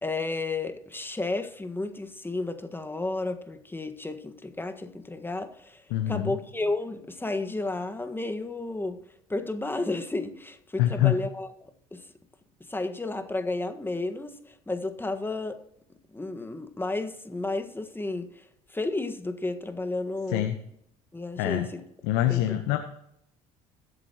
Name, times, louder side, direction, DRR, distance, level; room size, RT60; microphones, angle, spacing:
voice 1, 0.0-9.0 9.3-12.1 12.7-15.6 16.1-20.5 21.1-21.8 22.3-22.6, left 2 dB, 10° left, 7 dB, 1.5 m, -32 dB
voice 2, 5.9-6.4 10.8-11.1 20.3-20.6 21.4-21.7 22.0-22.8, left 13 dB, 70° left, 7 dB, 1.0 m, -25 dB
21.5 x 8.3 x 3.0 m, 0.78 s
hypercardioid pair, 65°, 19 cm